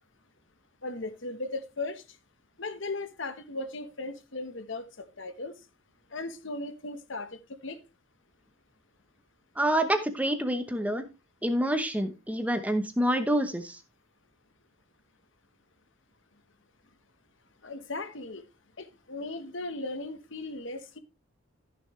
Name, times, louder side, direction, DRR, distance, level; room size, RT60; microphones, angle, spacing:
voice 1, 0.8-2.0 2.6-5.5 6.1-7.8 17.6-18.4 18.8-21.0, left 2 dB, 60° left, 1.2 m, -37 dB
voice 2, 9.6-11.0 11.4-13.8, right 1 dB, 5° right, 0.9 m, -27 dB
14.5 x 6.7 x 3.2 m
head